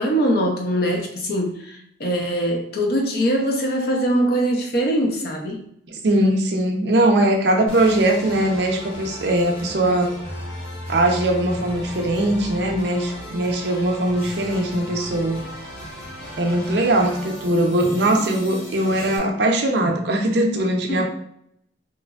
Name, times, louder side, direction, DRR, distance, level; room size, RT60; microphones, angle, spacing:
voice 1, 0.0-5.6 9.8-10.0 20.9-21.0, equal, 55° left, 2 dB, 0.5 m, -22 dB
voice 2, 5.9-10.1 10.9-15.4 16.4-21.0, right 1 dB, 65° right, 3 dB, 0.5 m, -20 dB
sound 1, 7.7-19.2, left 1 dB, 85° left, 1.1 m, -36 dB
2.9 x 2.4 x 2.3 m, 0.71 s
head